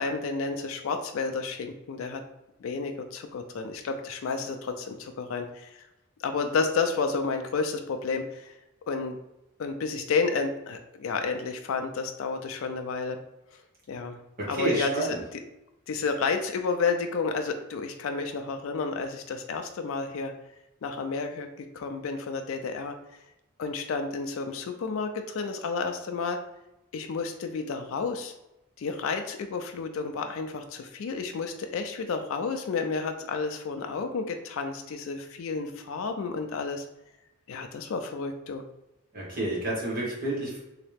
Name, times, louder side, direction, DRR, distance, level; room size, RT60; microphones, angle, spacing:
voice 1, 0.0-2.2 2.6-5.8 6.2-8.5 8.9-9.2 9.6-13.2 13.9-14.2 14.5-15.1 15.9-20.3 20.8-21.5 21.7-22.9 23.6-26.4 26.9-28.3 28.8-36.8 37.5-38.6, left 4 dB, 70° left, 5 dB, 0.3 m, -31 dB
voice 2, 14.4-15.2 39.1-40.6, right 1 dB, 45° right, -5 dB, 1.3 m, -29 dB
3.1 x 2.9 x 3.3 m, 0.93 s
head